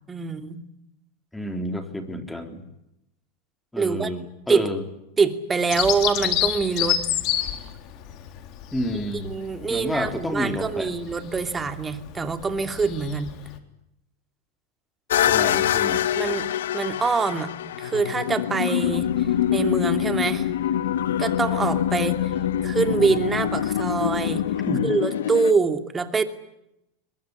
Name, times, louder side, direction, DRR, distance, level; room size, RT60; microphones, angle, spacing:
voice 1, 0.1-0.6 3.7-4.1 4.5-4.7 5.2-7.0 8.9-13.3 16.1-16.4 16.7-17.5 17.8-19.1 19.5-20.5 21.2-22.3 22.6-24.4 24.8-26.2, right 4 dB, 20° right, 8 dB, 2.7 m, -25 dB
voice 2, 1.3-2.7 3.7-4.8 8.7-9.3 9.7-10.9 15.2-16.0 24.7-24.9, left 1 dB, 5° left, 7 dB, 3.7 m, -29 dB
Bird vocalization bird call bird song, 5.7-13.6, left 12 dB, 50° left, 3.7 m, -29 dB
sound 1, 15.1-25.5, left 11 dB, 85° left, 1.0 m, -25 dB
sound 2, 18.8-24.9, right 9 dB, 60° right, 4.5 m, -42 dB
23.0 x 22.0 x 9.8 m, 0.84 s
supercardioid pair, 120°, 0 cm